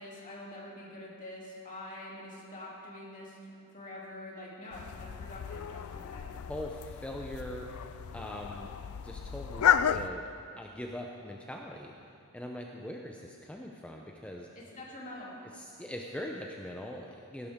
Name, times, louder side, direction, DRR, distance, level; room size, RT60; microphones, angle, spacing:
voice 1, 0.0-6.2 14.5-15.3, left 1 dB, 40° left, -5 dB, 2.8 m, -45 dB
sound 1, 4.7-10.1, left 9 dB, 90° left, 0.4 m, -32 dB
voice 2, 6.5-7.7 8.1-8.7 9.0-10.3 10.6-11.9 12.3-14.5 15.5-17.5, left 1 dB, 5° left, 0 dB, 0.6 m, -41 dB
16.5 x 11.5 x 3.6 m, 2.5 s
head